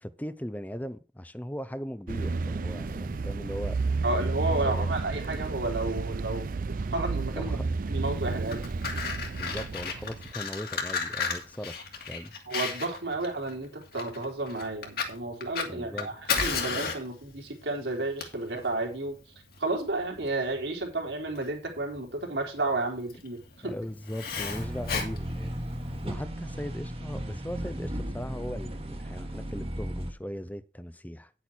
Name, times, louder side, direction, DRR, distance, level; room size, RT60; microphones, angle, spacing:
voice 1, 0.0-3.8 4.5-4.9 7.3-7.6 9.3-11.7 12.1-12.3 15.7-16.1 23.6-25.6 26.0-31.3, equal, 10° left, 0.7 m, -38 dB
sound 1, 2.1-10.3, right 3 dB, 50° right, 0.4 m, -31 dB
voice 2, 4.0-6.5 6.9-7.6 7.9-8.7 12.5-23.7, right 2 dB, 80° right, 3.7 m, -32 dB
Fire, 8.3-26.0, left 5 dB, 60° left, 2.6 m, -35 dB
sound 2, 24.5-30.1, equal, 35° right, 1.5 m, -35 dB
10.0 x 8.4 x 4.5 m
head